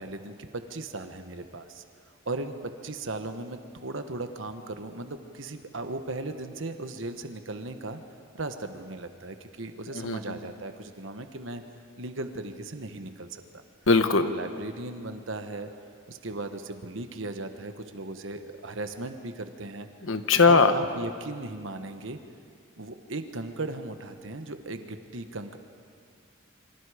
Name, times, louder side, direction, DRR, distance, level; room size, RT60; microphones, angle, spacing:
voice 1, 0.0-1.8 2.2-8.0 8.3-11.6 12.0-13.6 14.2-15.8 16.1-19.9 20.5-22.2 22.8-25.6, right 2 dB, 70° right, 7 dB, 1.2 m, -37 dB
voice 2, 9.9-10.4 13.9-14.3 20.0-20.7, left 4 dB, 75° left, 9 dB, 1.3 m, -20 dB
27.5 x 24.5 x 5.0 m, 2.3 s
head